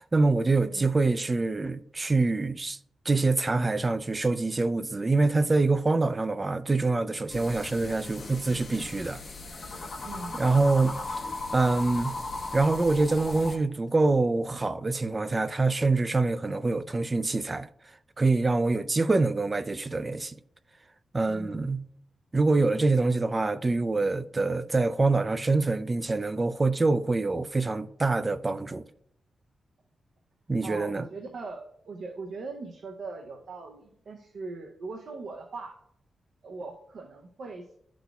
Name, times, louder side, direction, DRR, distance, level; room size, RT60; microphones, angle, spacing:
voice 1, 0.0-2.8 3.1-9.2 9.8-9.9 10.3-11.0 11.5-12.1 12.5-17.7 18.2-20.4 21.1-21.8 22.3-28.8 30.5-31.0, right 3 dB, 25° right, 0.3 m, -25 dB
voice 2, 0.6-1.0 10.0-10.4 21.3-21.6 30.6-35.8 36.4-37.8, right 3 dB, 70° right, 0.6 m, -40 dB
sound 1, 7.3-13.6, left 2 dB, 40° left, 0.9 m, -37 dB
11.5 x 4.0 x 2.3 m
wide cardioid pair, 120°, 0 cm